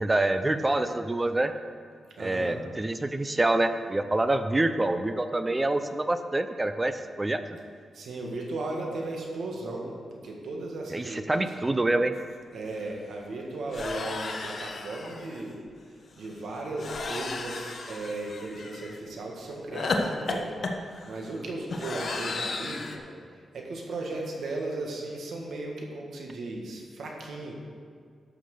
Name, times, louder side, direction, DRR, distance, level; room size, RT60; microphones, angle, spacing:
voice 1, 0.0-1.5 2.2-7.4 10.9-12.1, right 2 dB, 20° right, 9 dB, 0.6 m, -26 dB
voice 2, 2.2-2.6 7.9-11.5 12.5-15.6 15.9-27.5, right 2 dB, 75° right, 0 dB, 1.8 m, -36 dB
sound 1, 12.3-12.4 12.6-12.9 13.7-15.4 16.8-19.0 19.7-23.0, left 3 dB, 55° left, 1.0 m, -34 dB
11.5 x 5.9 x 6.6 m, 2.1 s
wide cardioid pair, 115°, 0 cm